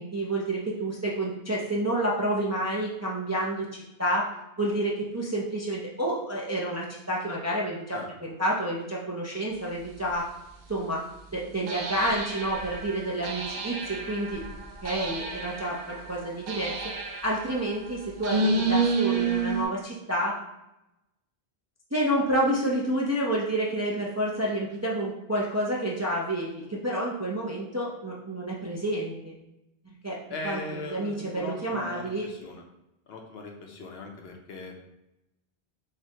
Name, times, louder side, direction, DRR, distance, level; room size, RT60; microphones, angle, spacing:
voice 1, 0.0-4.3 4.6-10.3 10.7-11.0 11.3-14.4 14.8-16.8 17.2-20.3 21.9-29.3 30.0-30.2 30.4-32.3, right 1 dB, 25° right, -4 dB, 0.4 m, -29 dB
sound 1, 10.1-10.2 11.7-19.6, right 3 dB, 75° right, 0.8 m, -30 dB
voice 2, 30.3-32.6 33.1-34.7, left 3 dB, 80° left, 2 dB, 0.9 m, -39 dB
5.8 x 2.2 x 2.8 m, 0.90 s
omnidirectional pair, 1.0 m